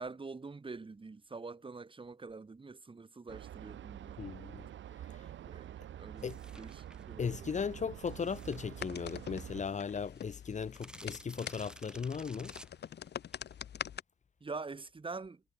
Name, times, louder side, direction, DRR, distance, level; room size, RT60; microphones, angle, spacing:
voice 1, 0.0-4.2 5.4-6.3 6.5-7.5 14.4-15.4, right 4 dB, 25° right, 3.5 m, -45 dB
sound 1, 3.3-9.6, right 11 dB, 70° right, 2.8 m, -47 dB
voice 2, 4.2-4.7 6.2-6.4 7.2-12.5, left 6 dB, 35° left, 1.3 m, -37 dB
sound 2, 6.2-7.1 8.1-9.4 9.8-9.9 10.0-13.5, right 1 dB, 5° right, 3.5 m, -54 dB
sound 3, 8.7-14.0, left 9 dB, 60° left, 2.0 m, -45 dB
cardioid pair, 90°, 20 cm